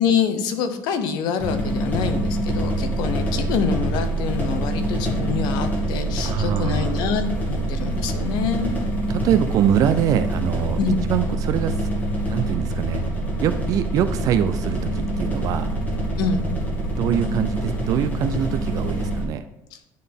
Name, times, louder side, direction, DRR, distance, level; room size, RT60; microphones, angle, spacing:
voice 1, 0.0-8.7 10.8-11.0 16.2-16.4 19.7-19.8, left 6 dB, 70° left, 9 dB, 0.8 m, -25 dB
sound 1, 1.4-19.2, right 1 dB, 20° left, 1.8 m, -25 dB
voice 2, 6.2-7.0 9.1-10.8 11.1-11.9 12.3-13.0 13.4-15.7 16.9-19.5, right 10 dB, 50° right, 11 dB, 0.4 m, -23 dB
10.0 x 3.9 x 3.6 m, 0.87 s
cardioid pair, 140°, 8 cm